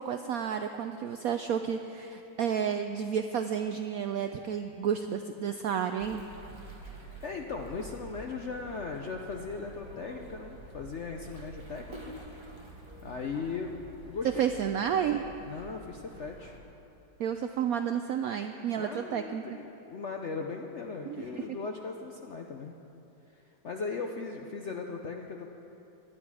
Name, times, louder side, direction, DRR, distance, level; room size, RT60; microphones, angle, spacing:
voice 1, 0.0-6.2 14.4-15.2 17.2-19.4 21.1-21.6, right 8 dB, 80° right, 7 dB, 0.8 m, -31 dB
sound 1, 6.0-16.6, right 1 dB, 15° right, 1.2 m, -48 dB
voice 2, 6.9-12.1 13.0-13.7 14.0-14.6 15.5-16.6 18.8-22.8 23.3-25.5, left 4 dB, 65° left, 2 dB, 0.7 m, -38 dB
18.0 x 11.5 x 4.8 m, 2.8 s
omnidirectional pair, 2.0 m